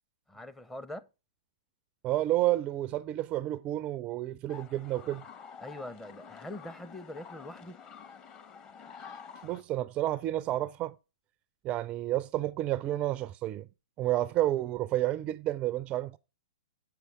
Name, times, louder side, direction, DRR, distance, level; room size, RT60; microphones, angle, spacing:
voice 1, 0.3-1.1 5.6-7.8, left 1 dB, 10° left, 0.6 m, -43 dB
voice 2, 2.0-5.2 9.4-11.0 11.6-13.7 14.0-16.2, right 14 dB, 30° right, 0.4 m, -30 dB
sound 1, 4.5-9.6, left 6 dB, 30° left, 1.0 m, -49 dB
8.0 x 6.7 x 4.8 m
hypercardioid pair, 120°, 4 cm